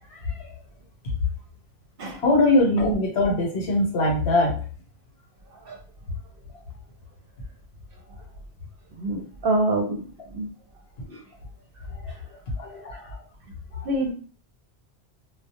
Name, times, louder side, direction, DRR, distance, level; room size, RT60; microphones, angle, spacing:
voice 1, 0.1-0.5 2.2-4.5 11.0-11.2 12.6-13.2 13.7-13.9, left 2 dB, 65° left, -1 dB, 1.0 m, -22 dB
voice 2, 9.0-10.0 10.3-10.5 13.8-14.1, right 2 dB, 65° right, 2 dB, 0.7 m, -26 dB
2.3 x 2.1 x 2.8 m, 0.39 s
omnidirectional pair, 1.2 m